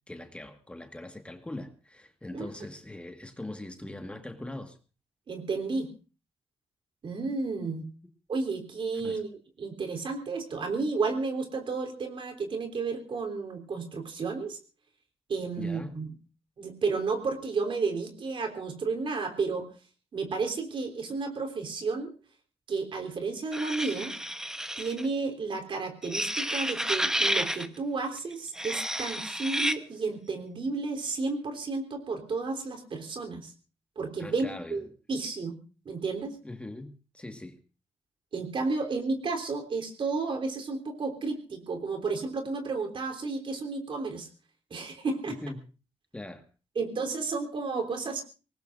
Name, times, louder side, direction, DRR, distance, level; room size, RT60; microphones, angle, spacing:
voice 1, 0.1-4.8 8.9-9.2 15.6-16.0 34.2-34.8 36.4-37.6 45.3-45.7 46.1-46.4, left 1 dB, 10° left, 1.6 m, -41 dB
voice 2, 5.3-5.9 7.0-7.9 8.3-9.3 9.6-14.6 15.3-16.1 16.6-19.7 20.1-22.1 22.7-24.1 24.8-33.5 33.9-35.5 35.8-36.4 38.3-44.3 44.7-45.4 46.7-48.2, right 4 dB, 55° right, 3.4 m, -32 dB
sound 1, 23.5-25.1 26.0-27.7 28.5-29.8, right 1 dB, 5° right, 0.9 m, -30 dB
24.5 x 19.5 x 2.6 m
cardioid pair, 115°, 10 cm